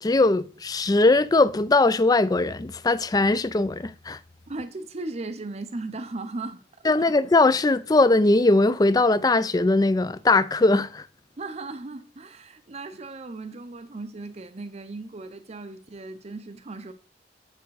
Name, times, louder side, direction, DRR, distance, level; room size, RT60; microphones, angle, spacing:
voice 1, 0.0-4.2 6.8-11.1, left 2 dB, 20° left, 0.4 m, -20 dB
voice 2, 4.5-6.6 7.0-7.1 11.4-16.9, right 2 dB, 35° right, 0.6 m, -37 dB
9.5 x 5.1 x 4.7 m
head